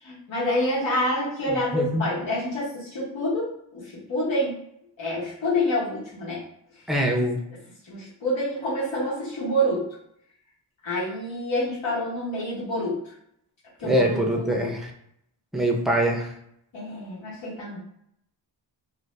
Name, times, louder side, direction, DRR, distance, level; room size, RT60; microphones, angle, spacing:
voice 1, 0.0-4.6 5.0-6.4 7.8-9.9 10.8-13.1 13.8-14.7 16.7-17.8, left 1 dB, 70° left, -9 dB, 1.2 m, -27 dB
voice 2, 1.7-2.0 6.9-7.4 13.8-14.8 15.5-16.3, right 1 dB, ahead, 0 dB, 0.5 m, -23 dB
2.6 x 2.6 x 3.2 m, 0.73 s
wide cardioid pair, 110°, 47 cm